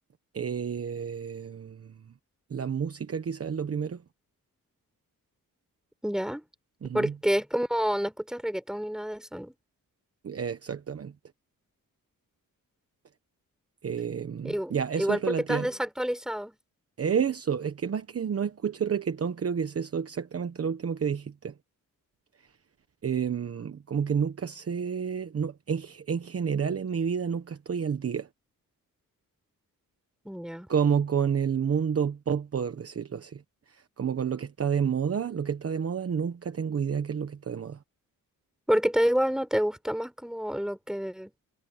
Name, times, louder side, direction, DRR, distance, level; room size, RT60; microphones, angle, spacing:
voice 1, 0.3-1.9 2.5-4.0 6.8-7.1 10.2-11.1 13.8-15.7 17.0-21.5 23.0-28.3 30.7-33.4 33.7-37.8, right 7 dB, 45° right, 1.1 m, -30 dB
voice 2, 6.0-6.4 6.9-9.5 14.4-16.6 30.2-30.7 38.7-41.3, equal, ahead, 4.8 m, -28 dB
wide cardioid pair, 150°, 34 cm